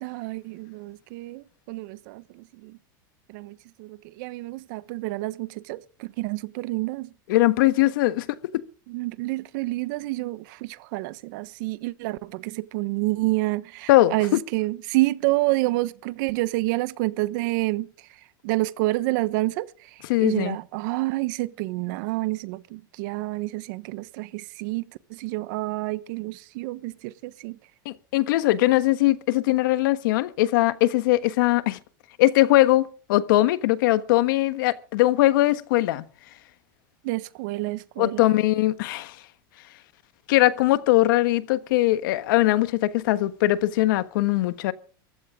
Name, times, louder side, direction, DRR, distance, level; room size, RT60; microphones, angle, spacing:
voice 1, 0.0-2.2 2.6-2.8 3.3-7.1 8.9-17.9 18.4-19.7 20.2-24.8 25.1-27.5 37.0-38.2, right 20 dB, 65° right, 1.1 m, -28 dB
voice 2, 7.3-8.6 13.9-14.4 20.1-20.6 27.8-31.8 32.2-36.0 38.0-39.1 40.3-44.7, left 16 dB, 75° left, 1.3 m, -21 dB
22.0 x 15.0 x 3.8 m
supercardioid pair, 115°, 11 cm